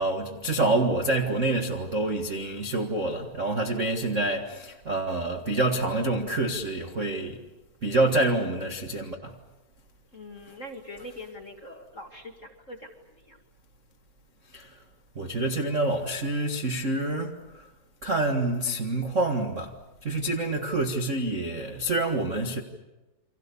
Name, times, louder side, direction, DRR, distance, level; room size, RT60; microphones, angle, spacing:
voice 1, 0.0-7.4 7.8-9.4 14.5-14.8 15.1-17.7 18.0-19.8 20.0-22.6, right 2 dB, 50° right, 0.8 m, -27 dB
voice 2, 10.1-12.9 13.2-13.4, left 1 dB, 30° left, 1.7 m, -42 dB
29.5 x 25.0 x 7.0 m
omnidirectional pair, 4.2 m